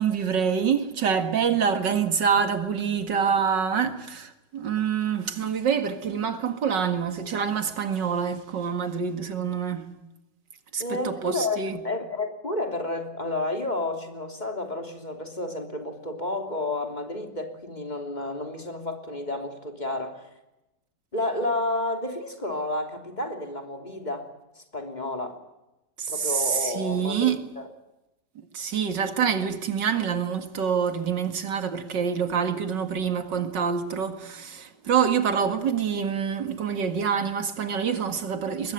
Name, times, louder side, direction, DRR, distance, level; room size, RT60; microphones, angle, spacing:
voice 1, 0.0-9.9 10.7-11.8 26.0-27.5 28.5-38.7, right 7 dB, 90° right, 2.6 m, -26 dB
voice 2, 10.8-20.3 21.1-24.3 24.5-25.4 26.1-27.7, left 2 dB, 25° left, 3.3 m, -31 dB
24.0 x 21.0 x 9.3 m
omnidirectional pair, 1.9 m